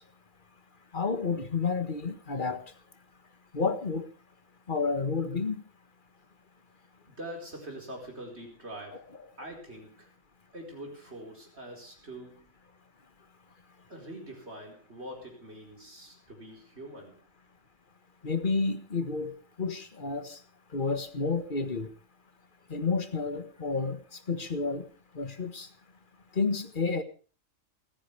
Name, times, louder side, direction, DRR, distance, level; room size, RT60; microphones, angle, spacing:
voice 1, 0.9-2.6 3.5-4.1 4.7-5.6 18.2-19.3 19.6-20.4 20.7-21.9 22.7-24.9 25.1-25.7 26.3-27.0, left 4 dB, 40° left, 10 dB, 1.7 m, -30 dB
voice 2, 7.1-9.1 9.4-10.1 10.5-12.5 13.9-17.2, right 1 dB, 50° right, 0 dB, 5.1 m, -44 dB
29.0 x 10.0 x 3.4 m, 0.36 s
omnidirectional pair, 1.4 m